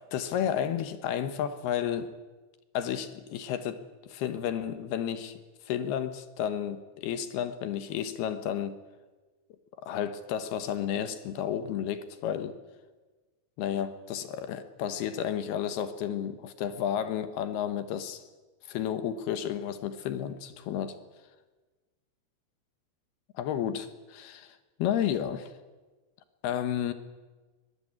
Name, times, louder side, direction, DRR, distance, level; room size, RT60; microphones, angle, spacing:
voice 1, 0.1-2.1 2.7-5.4 5.6-8.8 9.8-12.6 13.6-18.2 18.7-21.0 23.3-25.5 26.4-26.9, left 9 dB, 70° left, 11 dB, 2.7 m, -32 dB
22.5 x 21.0 x 8.9 m, 1.3 s
omnidirectional pair, 5.6 m